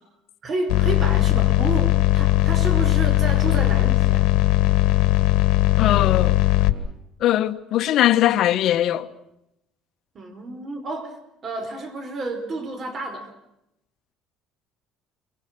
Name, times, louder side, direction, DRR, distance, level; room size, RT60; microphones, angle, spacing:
voice 1, 0.4-4.3 10.2-13.3, right 2 dB, 35° right, 5.4 m, -31 dB
sound 1, 0.7-6.7, left 16 dB, 75° left, 2.4 m, -19 dB
voice 2, 5.8-6.4 7.2-9.1, left 13 dB, 55° left, 1.5 m, -20 dB
29.0 x 25.0 x 6.3 m
cardioid pair, 145°, 0 cm